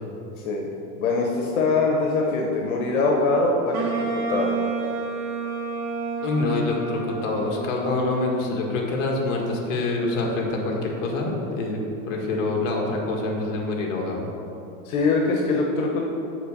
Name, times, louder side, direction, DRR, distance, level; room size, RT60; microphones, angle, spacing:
voice 1, 1.0-4.5 14.8-16.0, left 3 dB, 85° left, 0 dB, 1.1 m, -23 dB
Wind instrument woodwind instrument, 3.7-8.7, right 4 dB, 85° right, 1.8 m, -30 dB
voice 2, 6.2-11.8 12.1-14.2, left 2 dB, 55° left, 0 dB, 1.7 m, -26 dB
6.6 x 4.7 x 6.6 m, 2.8 s
supercardioid pair, 130°, 42 cm